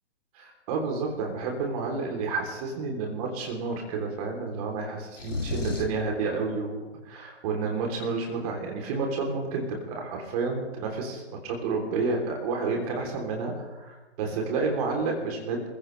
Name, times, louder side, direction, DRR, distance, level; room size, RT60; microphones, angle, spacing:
voice 1, 0.3-15.7, right 4 dB, 30° right, 1 dB, 3.4 m, -30 dB
sound 1, 5.2-6.0, left 3 dB, 85° left, 2.8 m, -31 dB
27.0 x 15.5 x 3.3 m, 1.2 s
figure-of-eight pair, 130°, 36 cm